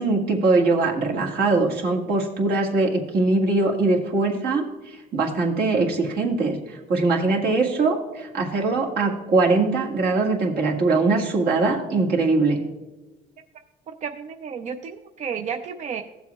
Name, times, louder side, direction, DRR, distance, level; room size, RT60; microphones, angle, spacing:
voice 1, 0.0-4.6 5.1-12.6, right 3 dB, 65° right, -1 dB, 1.8 m, -22 dB
voice 2, 14.0-16.0, right 6 dB, 45° right, 6 dB, 0.5 m, -32 dB
16.5 x 7.3 x 2.4 m, 1.1 s
cardioid pair, 110°, 17 cm